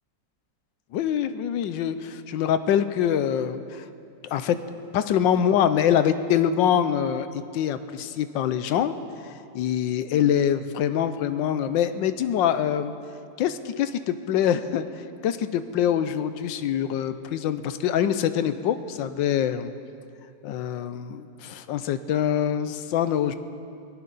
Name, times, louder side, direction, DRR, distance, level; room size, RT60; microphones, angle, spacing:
voice 1, 0.9-3.8 4.3-4.6 4.9-7.3 7.5-8.9 9.5-12.9 13.4-14.9 15.2-19.7 20.4-23.3, left 9 dB, 85° left, 12 dB, 1.4 m, -24 dB
19.5 x 17.0 x 4.1 m, 2.6 s
omnidirectional pair, 2.0 m